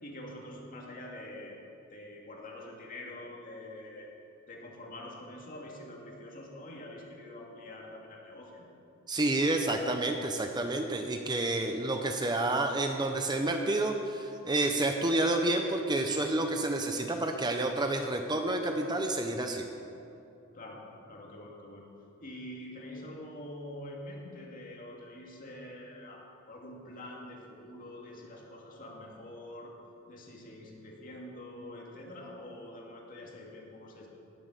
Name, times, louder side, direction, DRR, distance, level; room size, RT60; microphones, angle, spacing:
voice 1, 0.0-1.6 1.9-4.1 4.5-8.7 11.6-11.9 20.5-21.9 22.2-29.7 30.1-34.1, left 1 dB, 40° left, -1 dB, 2.3 m, -45 dB
voice 2, 9.1-19.6, right 2 dB, 20° right, 4 dB, 0.7 m, -29 dB
18.5 x 7.6 x 6.8 m, 2.7 s
head